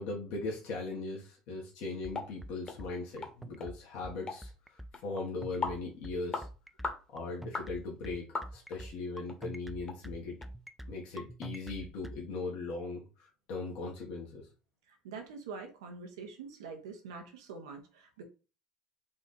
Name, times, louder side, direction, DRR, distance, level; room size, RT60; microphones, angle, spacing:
voice 1, 0.0-4.5 5.0-6.5 7.1-8.3 8.5-10.4 10.9-14.5, left 3 dB, 70° left, -3 dB, 1.3 m, -39 dB
sound 1, 2.0-12.2, right 1 dB, 5° right, 0.4 m, -45 dB
sound 2, 2.1-2.3 2.7-2.8 3.2-3.3 3.6-3.7 4.3-4.4 4.9-5.0 5.6-5.8 6.3-6.5 6.8-7.0 7.5-7.7 8.3-8.8 9.3-9.4 9.9-10.0 10.4-10.5, left 4 dB, 35° left, 1.2 m, -37 dB
voice 2, 14.9-18.2, right 5 dB, 90° right, 4 dB, 1.0 m, -45 dB
4.1 x 2.6 x 4.0 m, 0.33 s
supercardioid pair, 80°, 3 cm